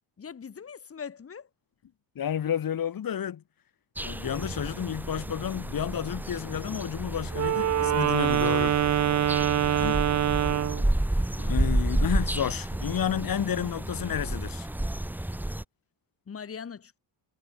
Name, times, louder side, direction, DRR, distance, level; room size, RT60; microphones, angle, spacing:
voice 1, 0.2-1.5 9.6-10.1 16.3-17.0, left 6 dB, 30° left, 3.2 m, -42 dB
voice 2, 2.1-3.4 4.0-8.8 9.8-10.0 11.4-14.7, left 9 dB, 45° left, 5.0 m, -31 dB
sound 1, 4.0-15.6, right 1 dB, 5° right, 1.1 m, -31 dB
Wind instrument woodwind instrument, 7.3-10.9, right 10 dB, 35° right, 0.8 m, -25 dB
cardioid pair, 155°, 47 cm